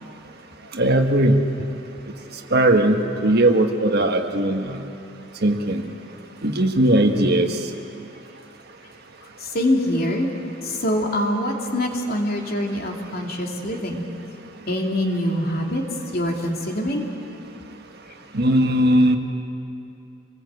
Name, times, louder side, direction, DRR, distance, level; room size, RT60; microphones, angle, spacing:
voice 1, 0.7-1.4 2.5-4.8 5.4-5.8 6.4-7.6 18.3-19.2, right 1 dB, 55° right, 4 dB, 1.6 m, -18 dB
voice 2, 9.5-10.3 10.8-14.0 14.7-15.8 16.1-17.1, left 1 dB, 50° left, 1 dB, 2.8 m, -24 dB
26.5 x 20.0 x 8.2 m, 2.7 s
head